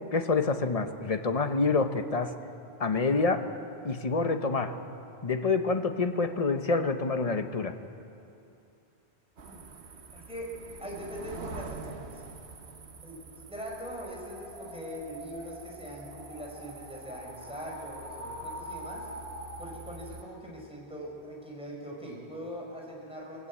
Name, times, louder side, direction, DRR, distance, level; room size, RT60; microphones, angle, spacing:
voice 1, 0.1-2.3 2.8-3.5 3.8-4.8 5.2-7.7, left 4 dB, 35° left, 8 dB, 0.9 m, -27 dB
sound 1, 9.4-20.2, right 4 dB, 90° right, 1.4 m, -47 dB
voice 2, 10.1-10.5 10.8-12.3 13.0-13.2 13.5-19.1 19.6-23.5, equal, 5° right, -3 dB, 4.7 m, -42 dB
sound 2, 14.1-19.9, equal, 70° right, 4.4 m, -44 dB
21.0 x 16.0 x 8.4 m, 2.7 s
omnidirectional pair, 1.1 m